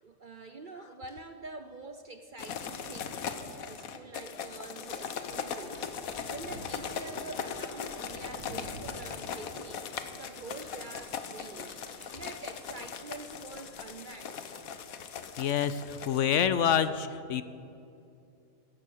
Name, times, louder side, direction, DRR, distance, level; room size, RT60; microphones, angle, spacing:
voice 1, 0.0-14.4, right 3 dB, 45° right, 8 dB, 0.7 m, -46 dB
sound 1, 1.1-1.4 4.4-7.8 10.1-10.2 10.4-13.3, left 1 dB, 30° left, 2.9 m, -57 dB
sound 2, 2.4-16.2, left 7 dB, 85° left, 1.4 m, -39 dB
Thunder, 5.7-10.8 11.2-11.3 12.6-12.7, right 1 dB, 80° right, 2.0 m, -49 dB
voice 2, 15.4-17.4, left 8 dB, 65° left, 13 dB, 0.9 m, -27 dB
15.0 x 14.5 x 6.6 m, 2.6 s
omnidirectional pair, 1.4 m